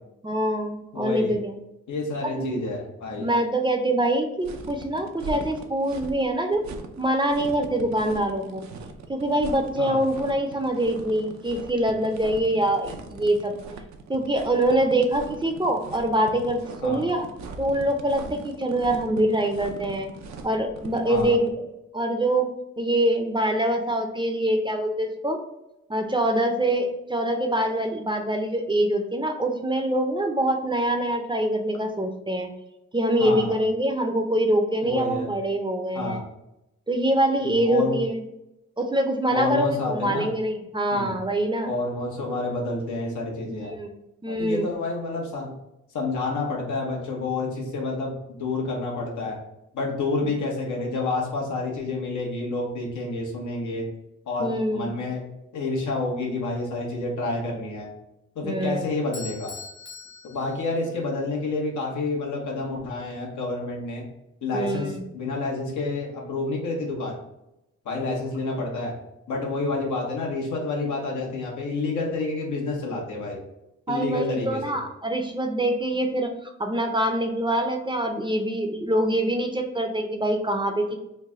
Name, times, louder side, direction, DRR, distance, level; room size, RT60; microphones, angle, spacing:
voice 1, 0.2-1.6 2.2-2.6 3.2-6.7 7.0-8.6 9.1-13.5 14.1-17.3 17.6-20.1 20.4-21.7 21.9-25.4 25.9-32.5 32.9-36.2 36.9-38.2 38.8-41.7 43.5-44.0 44.2-44.7 54.4-54.9 58.4-58.9 64.5-65.0 73.9-81.0, right 1 dB, 15° right, 4 dB, 0.5 m, -24 dB
voice 2, 0.9-1.4 1.9-3.3 9.8-10.0 16.8-17.0 21.1-21.4 33.2-33.5 34.8-35.3 35.9-36.2 37.4-38.0 39.3-40.3 40.9-41.1 41.7-43.8 44.3-45.5 45.9-49.4 49.7-53.9 54.3-55.2 55.5-57.9 58.3-59.5 60.2-64.0 64.4-67.2 67.8-68.9 69.3-73.4 73.9-74.7, left 3 dB, 85° left, -1 dB, 1.0 m, -29 dB
sound 1, 4.4-21.5, right 4 dB, 70° right, 0.5 m, -40 dB
Bell / Doorbell, 59.1-61.2, left 4 dB, 40° left, 0.8 m, -42 dB
3.2 x 2.2 x 3.5 m, 0.88 s
cardioid pair, 70°, 29 cm